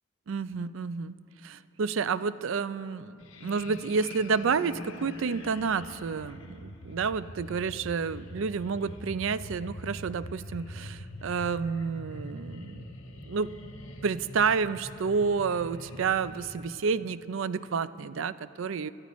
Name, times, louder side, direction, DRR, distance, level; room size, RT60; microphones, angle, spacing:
voice 1, 0.3-1.1 1.4-12.9 13.2-13.5 14.0-18.9, right 5 dB, 65° right, 15 dB, 0.4 m, -30 dB
sound 1, 3.2-16.7, left 1 dB, 75° left, 1.2 m, -44 dB
28.5 x 14.5 x 3.1 m, 2.8 s
head